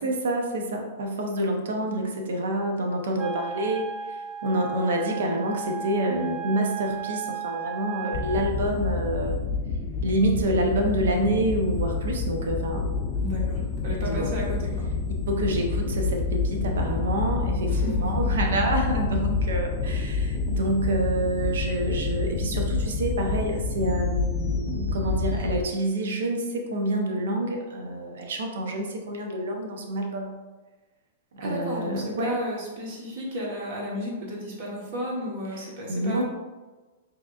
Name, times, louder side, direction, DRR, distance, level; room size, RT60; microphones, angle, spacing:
voice 1, 0.0-9.4 10.0-12.9 14.0-14.3 15.3-30.4 31.3-32.3 35.5-36.2, right 1 dB, 80° right, 2 dB, 0.7 m, -27 dB
Wind instrument woodwind instrument, 3.2-8.5, right 8 dB, 30° right, 0.3 m, -35 dB
sound 1, 8.1-25.6, left 4 dB, 40° left, 0.4 m, -28 dB
voice 2, 13.1-14.9 17.7-18.1 31.4-36.2, equal, 55° right, -3 dB, 1.3 m, -33 dB
4.8 x 2.9 x 2.5 m, 1.2 s
hypercardioid pair, 140°, 0 cm